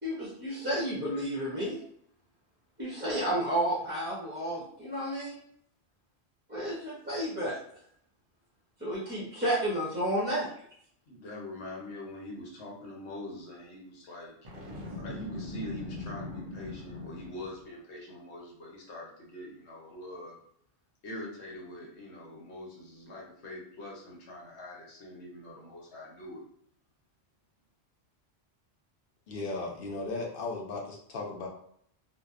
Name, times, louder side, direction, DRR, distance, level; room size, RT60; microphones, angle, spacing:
voice 1, 0.0-1.8 2.8-5.4 6.5-7.6 8.8-10.5, right 1 dB, 15° right, -7 dB, 0.5 m, -31 dB
voice 2, 11.1-14.3 15.0-20.4 21.0-26.5, left 1 dB, 80° left, -2 dB, 1.0 m, -43 dB
Boom, 14.4-17.6, left 2 dB, 50° right, 0.7 m, -41 dB
voice 3, 29.3-31.5, left 3 dB, 65° left, -1 dB, 0.7 m, -36 dB
2.6 x 2.1 x 2.3 m, 0.65 s
omnidirectional pair, 1.1 m